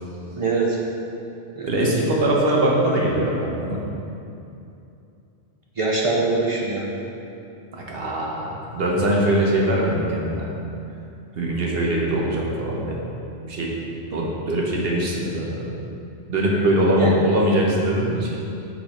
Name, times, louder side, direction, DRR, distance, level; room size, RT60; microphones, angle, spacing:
voice 1, 0.3-0.8 1.6-1.9 5.8-6.9 17.0-17.2, right 3 dB, 35° right, -3 dB, 0.6 m, -23 dB
voice 2, 1.6-3.9 7.7-10.5 11.4-13.0 13.5-13.7 14.1-15.7 16.3-18.4, right 1 dB, 55° right, -3 dB, 1.1 m, -22 dB
5.8 x 5.0 x 4.2 m, 2.7 s
omnidirectional pair, 1.2 m